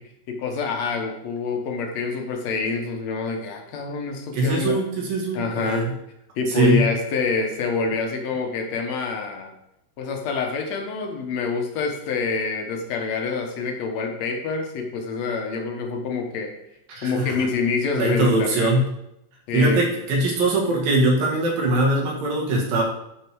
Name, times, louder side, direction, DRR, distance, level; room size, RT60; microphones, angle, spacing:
voice 1, 0.3-4.8 5.3-5.9 6.4-9.5 10.0-16.5 17.0-18.7 19.5-19.9, left 4 dB, 65° left, 3 dB, 2.0 m, -26 dB
voice 2, 4.3-5.9 6.5-6.9 16.9-17.5 17.9-18.9 19.5-22.8, right 2 dB, 85° right, -1 dB, 3.6 m, -21 dB
11.5 x 4.4 x 4.6 m, 0.82 s
omnidirectional pair, 4.0 m